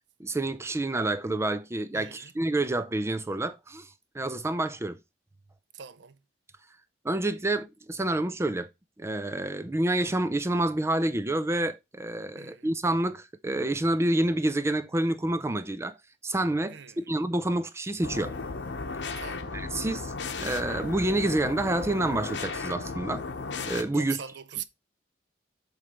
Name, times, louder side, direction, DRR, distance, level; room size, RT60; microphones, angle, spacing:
voice 1, 0.2-3.9 4.1-5.0 7.0-8.7 9.0-16.0 16.2-18.3 19.0-19.2 19.5-20.1 20.4-23.2 23.6-24.2, right 1 dB, 15° right, 0.4 m, -28 dB
voice 2, 1.9-2.3 5.7-6.2 12.3-12.7 16.7-17.1 19.2-19.6 23.9-24.7, right 9 dB, 75° right, 0.5 m, -42 dB
sound 1, 18.0-23.8, left 4 dB, 80° left, 0.9 m, -35 dB
7.6 x 3.2 x 5.0 m
head